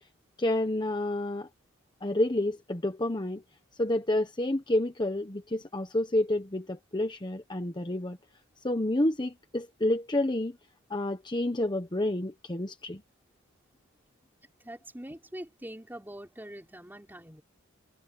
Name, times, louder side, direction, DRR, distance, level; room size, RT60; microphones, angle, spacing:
voice 1, 0.4-1.5 2.0-3.4 3.8-8.2 8.6-10.6 10.9-13.0, left 1 dB, 20° left, 1.0 m, -29 dB
voice 2, 14.6-17.4, right 1 dB, 10° right, 4.6 m, -43 dB
head